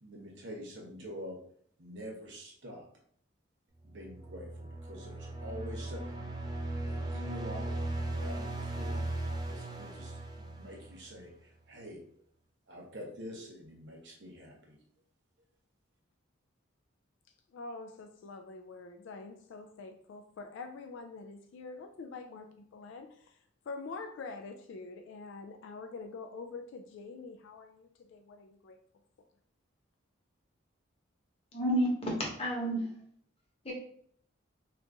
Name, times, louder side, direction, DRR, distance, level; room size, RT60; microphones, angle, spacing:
voice 1, 0.0-1.4 1.8-2.9 3.8-6.5 6.8-12.0 12.7-14.8, equal, 60° right, -1 dB, 0.9 m, -46 dB
sound 1, 3.9-11.3, right 2 dB, 20° right, 0.3 m, -37 dB
voice 2, 17.5-23.4 23.7-28.8, left 3 dB, 70° left, 5 dB, 0.3 m, -45 dB
voice 3, 31.5-32.8 33.6-33.7, equal, 30° left, -2 dB, 0.9 m, -30 dB
2.8 x 2.5 x 3.5 m, 0.63 s
head